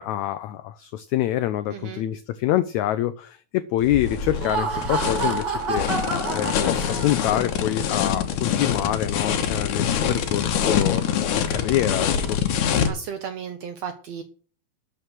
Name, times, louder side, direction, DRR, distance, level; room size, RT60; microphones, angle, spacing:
voice 1, 0.0-5.9 6.3-11.0 11.5-12.4, left 13 dB, 90° left, 13 dB, 1.6 m, -26 dB
voice 2, 1.7-2.0 12.8-14.2, right 7 dB, 70° right, 8 dB, 1.6 m, -34 dB
sound 1, 3.8-12.9, left 8 dB, 65° left, 2.6 m, -25 dB
Laughter, 4.2-7.5, right 4 dB, 35° right, 2.2 m, -28 dB
12.5 x 6.5 x 6.1 m, 0.41 s
omnidirectional pair, 4.0 m